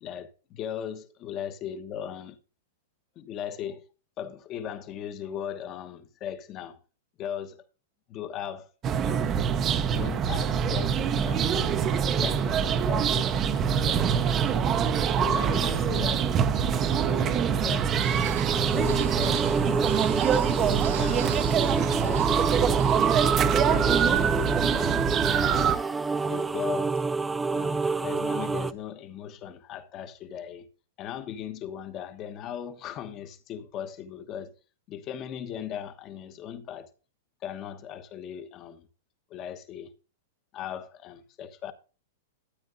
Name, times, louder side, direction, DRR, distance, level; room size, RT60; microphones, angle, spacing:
voice 1, 0.0-2.4 3.1-3.9 4.2-6.8 7.2-7.6 8.1-8.7 9.0-9.5 9.9-11.9 12.1-14.6 15.2-17.9 18.5-19.6 20.5-21.5 21.9-22.6 23.2-25.7 26.2-27.0 27.5-30.7 31.0-34.5 34.9-36.9 37.4-38.9 39.3-39.9 40.5-41.7, left 9 dB, 30° left, 1.1 m, -38 dB
sound 1, 8.8-25.8, right 8 dB, 25° right, 0.7 m, -25 dB
sound 2, 17.7-28.7, right 3 dB, 10° right, 0.3 m, -29 dB
sound 3, 18.0-28.8, right 12 dB, 60° right, 1.1 m, -42 dB
13.0 x 8.6 x 2.6 m
supercardioid pair, 150°, 0 cm